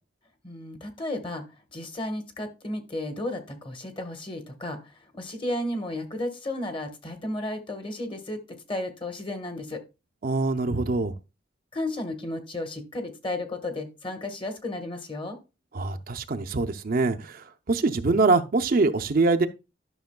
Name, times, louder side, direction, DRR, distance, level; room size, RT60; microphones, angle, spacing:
voice 1, 0.4-1.5 1.7-9.8 11.7-15.4, left 1 dB, 30° left, 1.2 m, -33 dB
voice 2, 10.2-11.1 15.7-19.5, right 3 dB, 50° right, 0.6 m, -24 dB
12.0 x 6.1 x 2.2 m
head